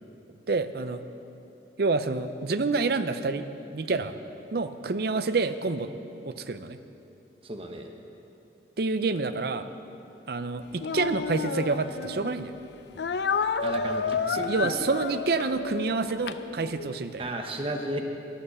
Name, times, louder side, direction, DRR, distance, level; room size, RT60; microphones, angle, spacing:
voice 1, 0.5-1.0 1.8-3.4 3.7-4.1 4.5-5.9 6.2-6.8 8.8-9.7 10.3-12.5 14.3-17.2, right 3 dB, 55° right, 11 dB, 0.5 m, -28 dB
voice 2, 7.4-7.9 13.6-14.5 17.2-18.0, right 1 dB, 30° right, 3 dB, 0.9 m, -34 dB
Speech, 10.8-12.3 13.0-17.0, left 5 dB, 65° left, 0.4 m, -31 dB
11.5 x 11.0 x 7.0 m, 2.8 s
head